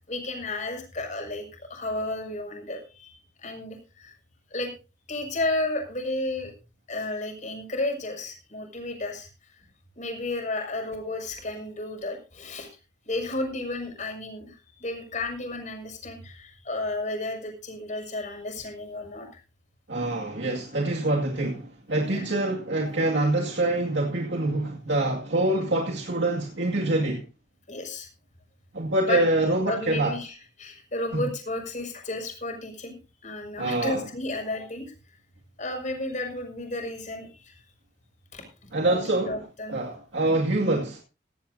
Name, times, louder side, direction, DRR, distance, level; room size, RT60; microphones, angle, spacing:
voice 1, 0.1-4.1 4.5-4.7 5.1-6.5 6.9-9.3 9.9-12.7 13.0-19.4 22.0-22.4 27.7-28.1 29.0-29.2 29.7-32.9 33.2-34.9 35.6-37.6 38.3-38.5 38.8-39.8, left 2 dB, 45° left, 6.3 m, -32 dB
voice 2, 19.9-27.2 28.7-30.1 31.1-31.2 33.6-34.0 38.7-39.4 39.7-41.0, right 2 dB, 80° right, 2.3 m, -25 dB
16.5 x 16.5 x 2.8 m
head